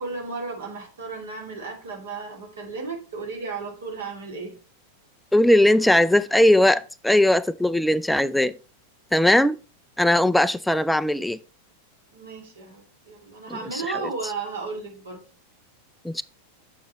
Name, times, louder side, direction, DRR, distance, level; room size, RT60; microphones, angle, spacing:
voice 1, 0.0-4.6 12.1-15.2, right 4 dB, 65° right, 2.5 m, -34 dB
voice 2, 5.3-8.5 9.1-9.6 10.0-11.4 13.7-13.8 16.0-16.2, left 1 dB, 5° left, 0.3 m, -19 dB
7.2 x 7.1 x 3.1 m
figure-of-eight pair, 90°, 0 cm